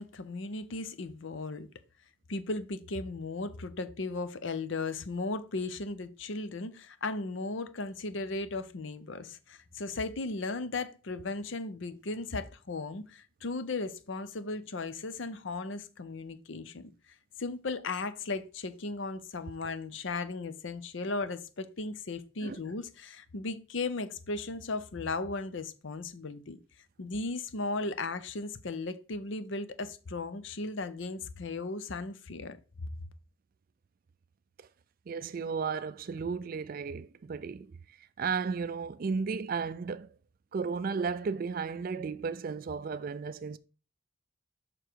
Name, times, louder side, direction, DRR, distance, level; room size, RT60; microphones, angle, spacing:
voice 1, 0.0-1.7 2.3-16.9 17.4-26.6 27.0-32.6, left 3 dB, 65° left, 0.6 m, -36 dB
voice 2, 35.1-40.1 40.5-43.6, right 5 dB, 45° right, 0.3 m, -34 dB
6.8 x 3.7 x 4.6 m
head